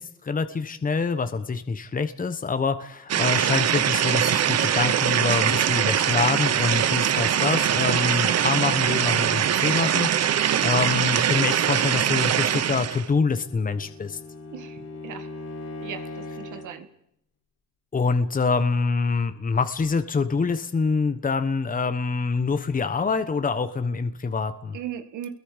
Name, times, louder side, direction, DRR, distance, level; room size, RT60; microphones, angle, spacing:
voice 1, 0.0-14.2 17.9-24.8, left 4 dB, 30° left, 10 dB, 1.3 m, -26 dB
sound 1, 3.1-13.1, right 9 dB, 55° right, 1.1 m, -22 dB
Bowed string instrument, 12.9-16.8, left 2 dB, 55° left, 3.9 m, -39 dB
voice 2, 14.5-15.3 15.8-16.9 24.7-25.3, right 10 dB, 80° right, 8 dB, 2.1 m, -38 dB
29.5 x 22.0 x 5.2 m, 0.76 s
cardioid pair, 90°, 30 cm